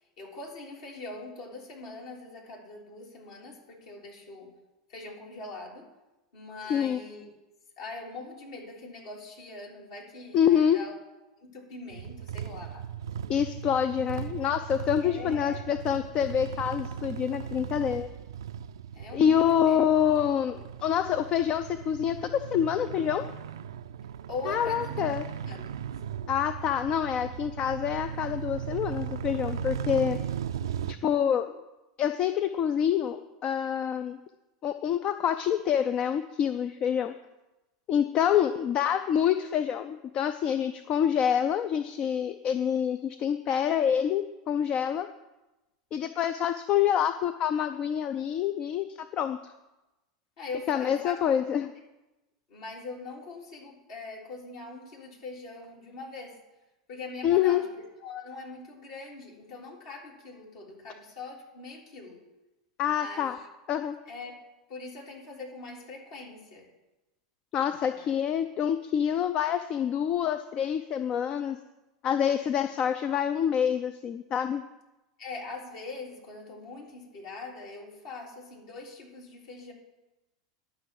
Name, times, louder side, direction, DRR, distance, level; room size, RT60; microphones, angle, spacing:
voice 1, 0.2-4.5 4.9-5.9 6.3-7.3 7.8-11.0 11.4-12.8 15.0-15.6 18.9-19.8 24.3-25.1 25.4-25.7 30.0-30.2 50.4-51.2 52.5-56.4 56.9-57.6 58.0-62.2 63.0-63.4 64.1-64.3 64.7-66.7 67.9-68.1 75.2-79.7, left 3 dB, 60° left, -2 dB, 3.6 m, -42 dB
voice 2, 10.3-10.8 13.3-18.1 19.1-23.3 24.5-25.2 26.3-30.2 30.9-31.6 32.0-34.2 34.6-37.1 37.9-45.1 45.9-49.4 50.7-51.7 57.2-57.6 62.8-63.4 63.7-64.0 67.5-71.6 72.0-74.6, left 9 dB, 40° left, 10 dB, 0.5 m, -26 dB
sound 1, 11.9-30.9, right 8 dB, 70° right, 0.4 m, -37 dB
11.5 x 6.0 x 7.7 m, 1.0 s
figure-of-eight pair, 85°, 3 cm